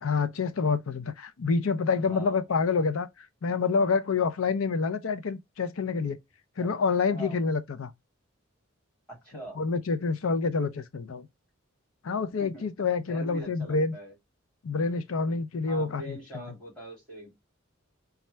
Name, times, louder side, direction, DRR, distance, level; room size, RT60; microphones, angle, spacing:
voice 1, 0.0-6.2 6.6-7.9 9.6-11.3 12.0-13.9 14.6-16.4, left 4 dB, 85° left, 0.5 m, -27 dB
voice 2, 2.1-2.4 6.6-6.7 7.1-7.4 9.1-9.6 12.4-12.6 13.1-14.1 15.6-17.3, right 1 dB, 5° left, 2.7 m, -43 dB
4.2 x 2.4 x 3.3 m
head